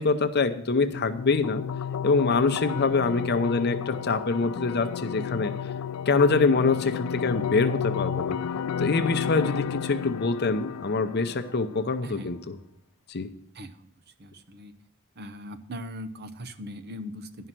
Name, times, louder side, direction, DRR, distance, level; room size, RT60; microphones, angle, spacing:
voice 1, 0.0-1.6 2.0-5.5 6.1-8.4 8.8-12.6 13.1-13.3, left 4 dB, 50° left, 9 dB, 0.7 m, -25 dB
sound 1, 0.9-11.9, left 7 dB, 85° left, 0.4 m, -32 dB
voice 2, 13.5-13.9 14.2-14.7 15.2-17.5, equal, 50° right, 9 dB, 0.7 m, -40 dB
11.0 x 5.6 x 7.5 m, 0.72 s
head